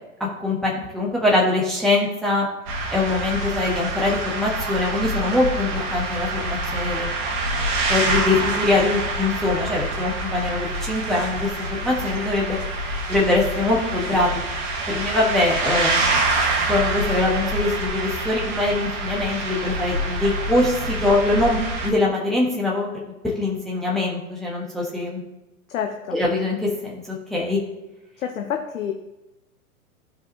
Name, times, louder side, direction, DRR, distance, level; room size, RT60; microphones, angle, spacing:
voice 1, 0.4-2.5 2.9-7.1 7.9-12.6 13.1-14.4 14.9-16.2 16.7-25.2 26.1-27.6, left 2 dB, ahead, -4 dB, 1.4 m, -23 dB
sound 1, 2.7-21.9, right 2 dB, 45° right, 1.8 m, -26 dB
voice 2, 25.7-26.2 28.2-28.9, left 8 dB, 65° left, 4 dB, 0.9 m, -28 dB
14.0 x 5.0 x 2.9 m, 0.98 s
figure-of-eight pair, 105°, 44 cm